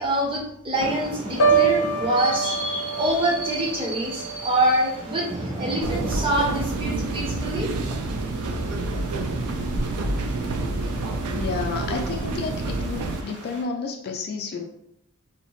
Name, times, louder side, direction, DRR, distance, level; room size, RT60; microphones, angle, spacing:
voice 1, 0.0-7.7, right 1 dB, 25° right, -1 dB, 0.6 m, -25 dB
sound 1, 0.7-13.6, right 2 dB, 85° right, 1.0 m, -38 dB
Piano, 1.4-5.3 5.7-6.1, right 5 dB, 85° left, 0.6 m, -25 dB
sound 2, 5.8-13.2, right 2 dB, 70° right, 0.3 m, -28 dB
voice 2, 11.3-14.6, left 4 dB, 45° left, 3 dB, 0.3 m, -31 dB
2.7 x 2.0 x 2.9 m, 0.77 s
head